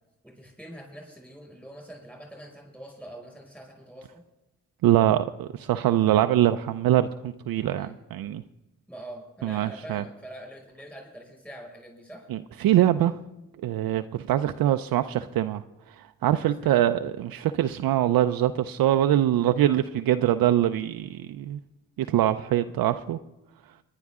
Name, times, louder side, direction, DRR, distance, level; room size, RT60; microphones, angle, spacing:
voice 1, 0.2-4.2 7.8-7.9 8.9-12.3 14.5-14.8 16.6-16.8, right 1 dB, 5° left, 5.7 m, -44 dB
voice 2, 4.8-8.4 9.4-10.0 12.3-13.2 13.6-15.6 16.0-21.6 22.0-23.2, right 12 dB, 75° right, 0.5 m, -23 dB
19.5 x 11.0 x 3.6 m
supercardioid pair, 50°, 35 cm